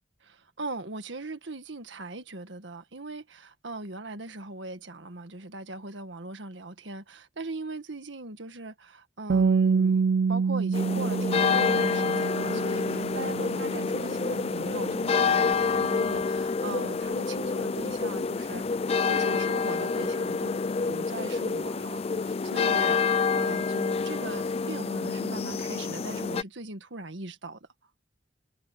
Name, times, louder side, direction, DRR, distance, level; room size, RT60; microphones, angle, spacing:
voice 1, 0.2-10.0 10.3-18.6 19.1-20.6 20.9-27.7, right 2 dB, 80° right, 1.7 m, -39 dB
Bass guitar, 9.3-15.5, right 5 dB, 60° right, 0.4 m, -28 dB
sound 1, 10.7-26.4, left 5 dB, 35° left, 0.4 m, -28 dB
head